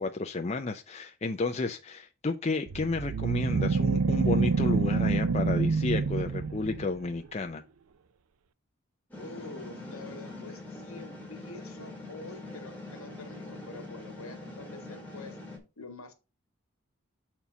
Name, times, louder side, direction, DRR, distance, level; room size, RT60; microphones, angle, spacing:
voice 1, 0.0-7.6, left 3 dB, 30° left, 0.5 m, -32 dB
sound 1, 2.7-7.1, right 4 dB, 85° right, 0.5 m, -27 dB
sound 2, 9.1-15.6, left 2 dB, 10° left, 2.0 m, -43 dB
voice 2, 9.2-15.4 15.8-16.1, left 3 dB, 75° left, 1.6 m, -46 dB
6.9 x 4.5 x 5.0 m
head